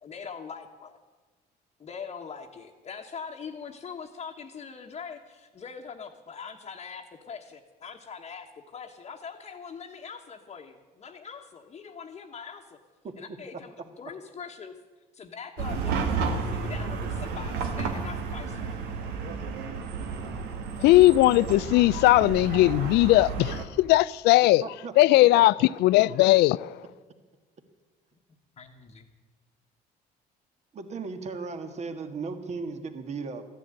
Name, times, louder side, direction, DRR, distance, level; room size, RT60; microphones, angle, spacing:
voice 1, 0.0-1.0 1.8-12.8 13.2-14.8 15.1-16.2 16.5-18.8 28.6-29.1, left 6 dB, 35° left, 1.2 m, -42 dB
voice 2, 13.0-13.4 24.6-25.4 30.7-33.5, right 4 dB, 40° right, 1.6 m, -36 dB
Chatter / Car passing by / Traffic noise roadway noise, 15.6-23.6, right 5 dB, 85° right, 1.7 m, -32 dB
voice 3, 20.8-24.6 25.0-26.7, left 17 dB, 80° left, 0.4 m, -19 dB
14.0 x 10.5 x 8.9 m
cardioid pair, 110°, 17 cm